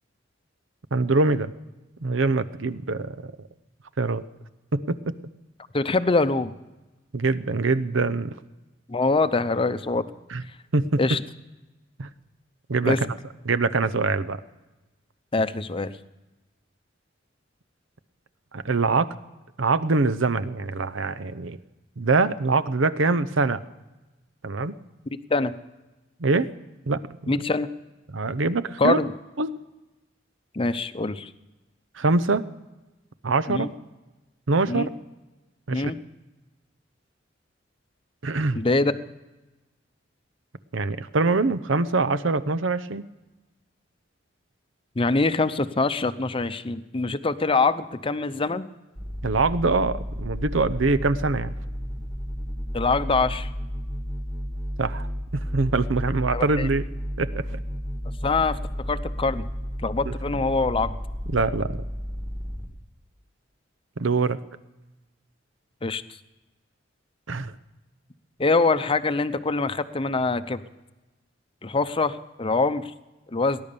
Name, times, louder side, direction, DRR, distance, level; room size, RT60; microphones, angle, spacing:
voice 1, 0.9-1.5 2.0-3.3 4.0-4.2 4.7-5.0 7.1-8.3 10.3-10.4 10.7-11.0 12.0-12.1 12.7-13.1 13.5-14.4 18.5-19.1 19.6-21.6 22.0-23.6 24.4-24.7 26.2-26.5 26.9-27.0 28.1-29.0 29.4-29.5 32.0-32.5 33.2-33.7 34.5-34.9 35.7-35.9 38.2-38.6 40.7-43.1 49.2-51.5 54.8-55.1 55.3-56.8 57.2-57.4 60.1-60.4 61.3-61.8 64.0-64.4 67.3-67.5, right 3 dB, 75° right, 13 dB, 0.8 m, -24 dB
voice 2, 5.7-6.5 8.9-10.0 11.0-11.2 12.8-13.0 15.3-15.9 25.1-25.5 27.3-27.7 28.8-29.1 30.5-31.3 33.5-33.7 34.7-34.9 35.7-36.0 38.5-39.0 45.0-48.7 52.7-53.5 56.3-56.7 58.2-58.6 58.9-59.5 59.8-61.0 65.8-66.0 68.4-70.6 71.6-72.9 73.3-73.6, left 3 dB, 30° left, 11 dB, 0.7 m, -24 dB
sound 1, 48.9-62.7, equal, 15° right, 2.0 m, -32 dB
19.0 x 11.0 x 6.8 m, 1.1 s
head